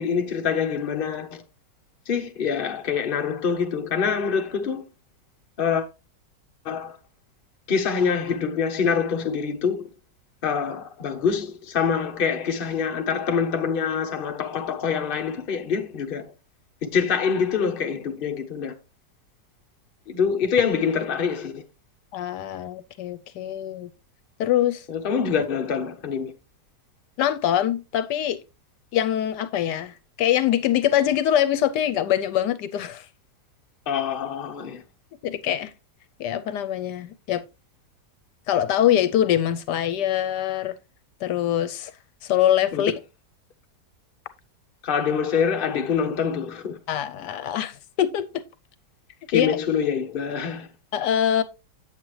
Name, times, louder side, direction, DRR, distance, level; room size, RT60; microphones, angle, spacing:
voice 1, 0.0-1.4 2.1-4.8 5.6-5.9 6.6-7.0 7.7-9.9 10.4-16.3 16.8-18.7 20.1-21.6 24.9-26.3 33.9-34.8 42.7-42.8 44.8-46.8 49.3-50.7, left 6 dB, 40° left, 1.0 m, -25 dB
voice 2, 22.1-23.9 24.4-24.8 27.2-28.4 28.9-33.1 35.2-35.7 36.2-37.5 38.5-40.7 41.2-41.9 42.2-42.9 46.9-48.4 49.3-49.6 50.9-51.4, left 11 dB, 80° left, 1.2 m, -23 dB
8.1 x 7.5 x 3.1 m
omnidirectional pair, 1.8 m